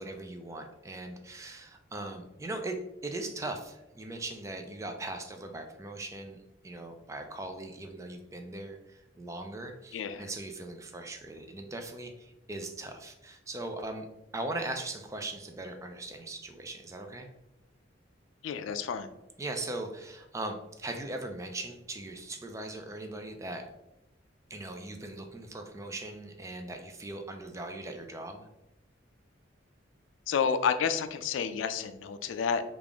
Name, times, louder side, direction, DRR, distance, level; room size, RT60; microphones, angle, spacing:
voice 1, 0.0-14.1 14.3-17.3 19.4-23.7 24.5-28.5, right 2 dB, 15° right, 4 dB, 0.3 m, -39 dB
voice 2, 9.9-10.2 18.4-19.1 30.3-32.6, left 6 dB, 85° left, 10 dB, 0.3 m, -30 dB
3.5 x 2.4 x 3.4 m, 0.92 s
head